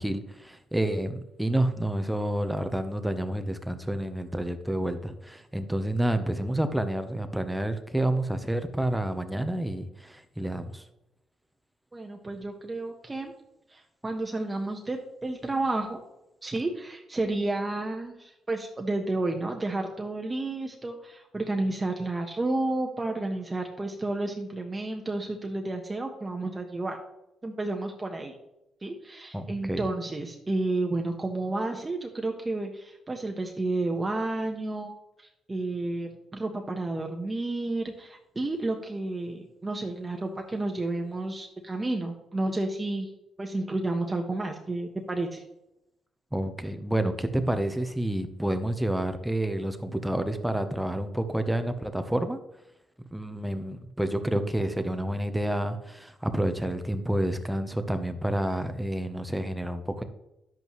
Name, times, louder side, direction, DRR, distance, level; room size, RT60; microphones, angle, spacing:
voice 1, 0.0-10.8 29.3-29.8 46.3-52.4 53.1-60.0, right 1 dB, 5° right, 8 dB, 0.8 m, -29 dB
voice 2, 11.9-13.3 13.7-16.0 16.4-27.0 27.4-28.4 28.8-43.1 43.4-45.4, right 2 dB, 20° right, 2 dB, 1.1 m, -31 dB
10.5 x 8.2 x 3.1 m, 0.86 s
cardioid pair, 90°, 0 cm